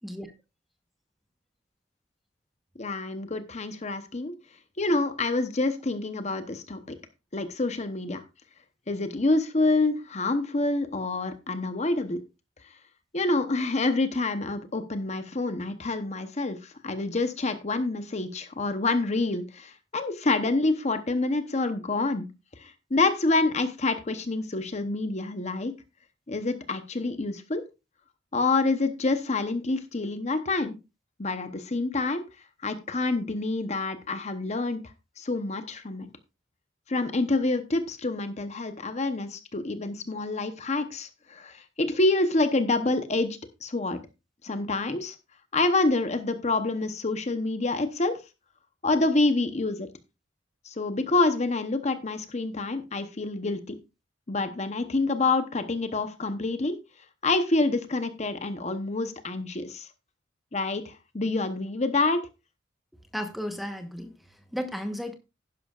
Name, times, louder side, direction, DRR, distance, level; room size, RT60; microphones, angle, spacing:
voice 1, 2.8-4.3 4.8-6.8 7.3-8.2 8.9-12.2 13.1-22.3 22.6-25.7 26.3-27.6 28.3-30.8 31.2-32.2 32.6-34.8 35.2-36.1 36.9-44.0 44.4-45.1 45.5-48.2 48.8-49.9 50.6-53.8 54.3-56.8 57.2-59.9 60.5-62.2, left 2 dB, 35° left, 0.9 m, -27 dB
voice 2, 63.1-65.1, equal, ahead, 1.1 m, -34 dB
11.5 x 10.5 x 2.4 m
head